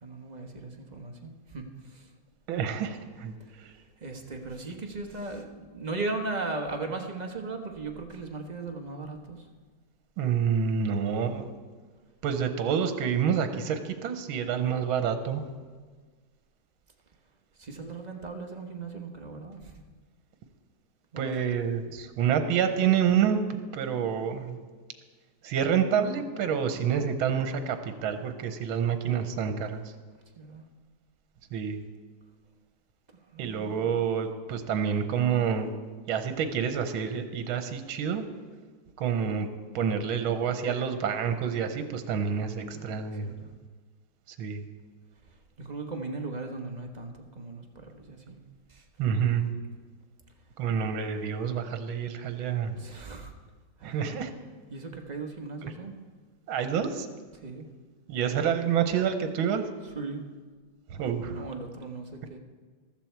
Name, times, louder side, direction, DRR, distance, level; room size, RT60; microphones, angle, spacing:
voice 1, 0.0-2.1 4.0-9.4 17.6-19.8 21.1-21.4 30.3-30.6 33.3-33.9 42.7-42.9 43.2-43.5 45.6-48.4 48.7-48.8 52.8-53.3 53.8-54.0 54.7-55.9 57.4-57.7 59.9-60.2 61.3-62.4, right 3 dB, 25° right, 3 dB, 1.0 m, -37 dB
voice 2, 2.5-3.7 10.2-11.5 12.2-15.4 21.2-24.6 25.4-29.8 31.5-31.8 33.4-35.7 36.1-38.2 39.0-39.5 39.7-43.3 44.3-44.6 49.0-49.5 50.6-52.9 53.8-54.3 56.5-57.1 58.1-59.6 60.9-61.4, right 7 dB, 80° right, 8 dB, 1.7 m, -28 dB
14.5 x 13.0 x 4.5 m, 1.5 s
omnidirectional pair, 2.2 m